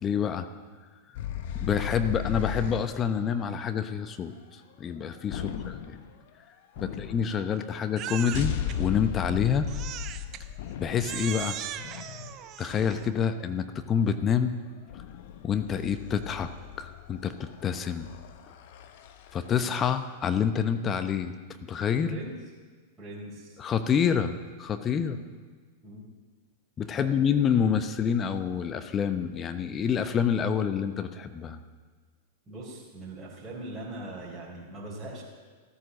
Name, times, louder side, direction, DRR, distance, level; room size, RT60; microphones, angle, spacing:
voice 1, 0.0-0.5 1.5-4.3 4.8-5.7 6.8-9.7 10.8-11.6 12.6-14.5 15.4-16.5 16.8-18.1 19.3-21.3 21.7-22.2 23.6-24.3 24.6-25.2 26.8-31.6, left 7 dB, 25° left, 9 dB, 1.0 m, -27 dB
sound 1, 1.1-2.9 5.3-6.1 6.7-7.6 8.3-13.5 14.9-19.8, left 9 dB, 55° left, 1.2 m, -36 dB
Crying sobbing, 8.0-8.8 9.7-10.4 11.0-13.1, right 11 dB, 40° right, 0.8 m, -38 dB
voice 2, 22.0-22.3 23.0-23.6 24.9-25.2 25.8-26.0 26.9-27.1 32.5-35.2, right 1 dB, 20° right, -7 dB, 4.3 m, -41 dB
14.5 x 14.0 x 6.4 m, 1.5 s
figure-of-eight pair, 95°, 0 cm